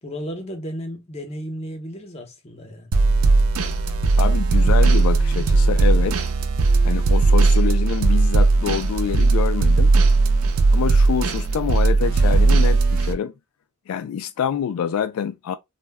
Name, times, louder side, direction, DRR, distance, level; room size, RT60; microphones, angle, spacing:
voice 1, 0.0-2.9, equal, 30° left, 0.7 m, -34 dB
sound 1, 2.9-13.1, right 3 dB, 80° right, 0.4 m, -17 dB
voice 2, 4.2-6.2 6.8-9.9 10.7-13.3 13.9-15.6, left 8 dB, 85° left, 0.3 m, -26 dB
2.2 x 2.0 x 3.3 m
head